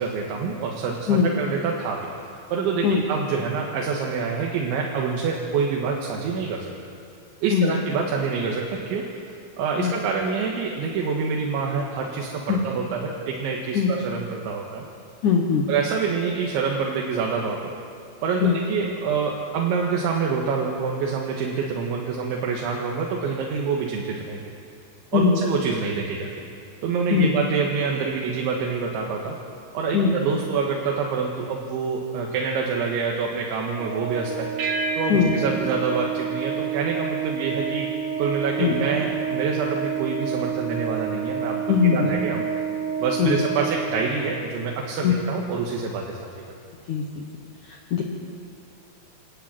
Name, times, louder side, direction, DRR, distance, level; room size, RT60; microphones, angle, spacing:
voice 1, 0.0-2.1 2.5-6.7 7.4-9.1 9.6-14.8 15.7-17.7 18.2-24.5 25.1-26.3 26.8-29.4 29.7-34.5 34.9-37.9 38.2-42.4 43.0-46.4, right 5 dB, 80° right, -1 dB, 4.0 m, -26 dB
voice 2, 15.2-15.7 18.4-18.6 25.1-25.4 27.1-27.4 29.9-30.1 35.1-35.3 38.6-38.8 41.7-42.1 43.2-43.4 45.0-45.1 46.9-47.2 47.7-48.0, left 7 dB, 65° left, 1 dB, 2.1 m, -20 dB
Organ, 33.8-44.4, right 8 dB, 15° right, 4.9 m, -29 dB
sound 1, 34.6-37.3, right 1 dB, 60° right, 1.9 m, -33 dB
27.0 x 11.5 x 9.0 m, 2.4 s
omnidirectional pair, 5.3 m